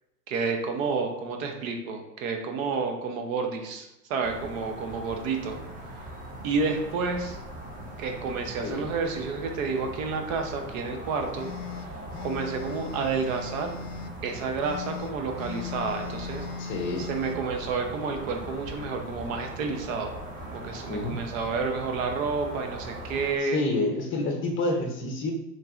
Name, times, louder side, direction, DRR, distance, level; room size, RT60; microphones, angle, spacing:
voice 1, 0.3-5.6 6.4-7.4 8.0-11.5 12.2-13.7 14.2-16.5 17.0-20.1 20.5-23.6, right 4 dB, 55° right, 4 dB, 0.8 m, -30 dB
sound 1, 4.2-23.4, right 1 dB, 15° right, 0.7 m, -40 dB
voice 2, 8.6-8.9 16.6-17.1 20.9-21.2 23.4-25.3, left 2 dB, 25° left, 2 dB, 0.7 m, -28 dB
sound 2, 11.3-14.1 14.6-17.4, left 5 dB, 70° left, 0.5 m, -38 dB
4.5 x 3.1 x 2.4 m, 0.93 s
hypercardioid pair, 90°, 48 cm